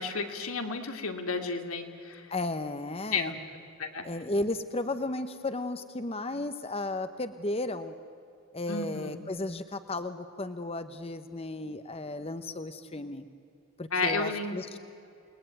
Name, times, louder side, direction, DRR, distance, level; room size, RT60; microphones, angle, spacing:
voice 1, 0.0-2.2 3.1-3.4 3.8-4.0 8.7-9.2 13.9-14.6, left 4 dB, 85° left, 5 dB, 2.5 m, -32 dB
voice 2, 2.3-3.3 4.0-7.9 8.5-13.3 13.8-14.8, left 2 dB, 30° left, 10 dB, 0.9 m, -34 dB
29.0 x 19.5 x 9.3 m, 2.7 s
head